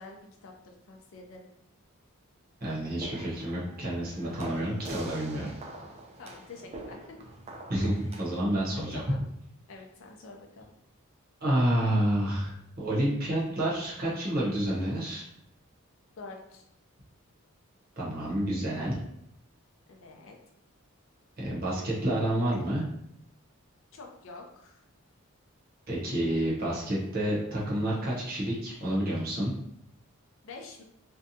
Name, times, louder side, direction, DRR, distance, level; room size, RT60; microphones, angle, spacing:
voice 1, 0.0-1.5 5.4-5.5 6.2-7.2 7.8-8.2 8.7-9.3 9.7-10.7 16.2-16.6 19.9-20.4 23.9-24.8 30.4-30.8, left 3 dB, 65° left, 1 dB, 0.5 m, -47 dB
voice 2, 2.6-5.5 7.7-9.0 11.4-15.2 18.0-19.0 21.4-22.8 25.9-29.5, right 1 dB, 45° right, -6 dB, 0.8 m, -29 dB
sound 1, 2.7-8.6, right 2 dB, 30° right, 0.3 m, -44 dB
2.6 x 2.2 x 2.7 m, 0.76 s
head